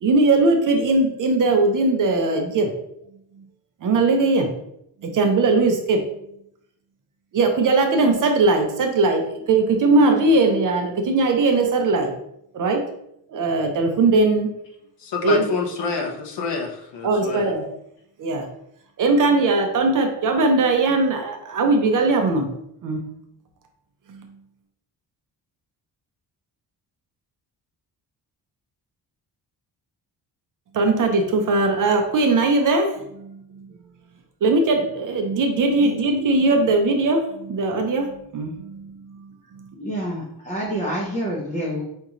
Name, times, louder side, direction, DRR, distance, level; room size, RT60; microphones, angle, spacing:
voice 1, 0.0-2.7 3.8-4.5 5.0-6.0 7.3-12.1 12.5-12.8 13.3-14.5 15.2-15.4 17.0-17.7 18.2-18.5 19.0-22.5 22.8-23.0 24.1-24.3 30.7-33.7 34.4-39.6, right 3 dB, 50° right, 4 dB, 0.5 m, -20 dB
voice 2, 15.0-17.5, left 5 dB, 85° left, 2 dB, 0.8 m, -27 dB
voice 3, 39.8-41.8, equal, 20° left, -6 dB, 0.6 m, -27 dB
5.3 x 2.4 x 2.9 m, 0.76 s
wide cardioid pair, 170°, 41 cm